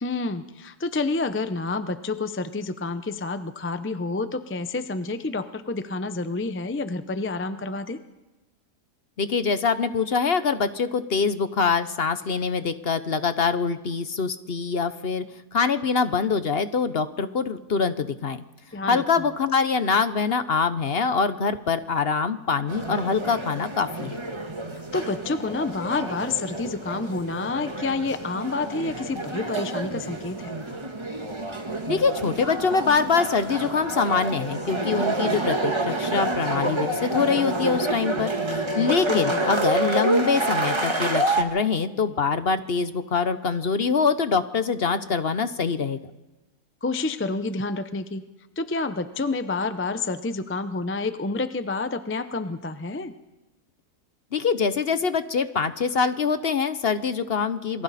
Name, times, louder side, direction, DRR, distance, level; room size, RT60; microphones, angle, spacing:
voice 1, 0.0-8.0 18.7-19.3 24.9-30.5 39.1-39.5 46.8-48.2 48.6-53.1, left 3 dB, 20° left, 11 dB, 0.3 m, -29 dB
voice 2, 9.2-15.2 15.5-18.4 18.9-24.2 31.9-46.0 54.3-57.8, left 5 dB, 45° left, 11 dB, 0.9 m, -24 dB
sound 1, 22.7-41.4, right 2 dB, 20° right, 1.4 m, -28 dB
27.0 x 23.0 x 4.2 m, 1.1 s
omnidirectional pair, 1.7 m